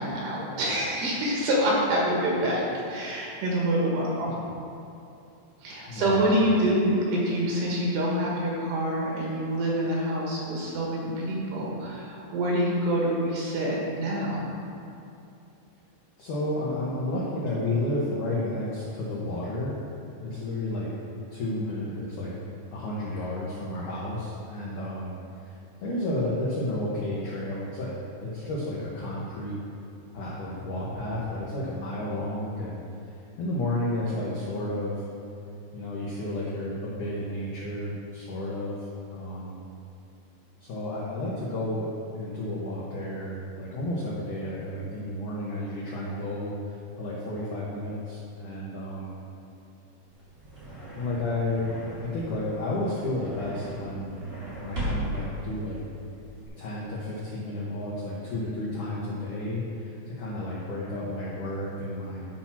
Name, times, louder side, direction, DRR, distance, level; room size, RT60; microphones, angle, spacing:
voice 1, 0.0-4.4 5.6-14.5, right 1 dB, 65° right, -3 dB, 3.3 m, -26 dB
voice 2, 5.9-6.4 16.2-19.8 20.2-20.9 21.3-22.3 22.7-29.5 30.1-32.8 33.4-35.0 35.7-39.6 40.6-41.9 42.2-49.2 50.9-51.7 52.0-54.2 54.6-55.8 56.6-62.3, left 1 dB, 80° left, -6 dB, 1.8 m, -32 dB
sound 1, 50.1-56.5, right 1 dB, 35° right, 1.5 m, -37 dB
12.0 x 4.4 x 5.8 m, 2.7 s
omnidirectional pair, 5.4 m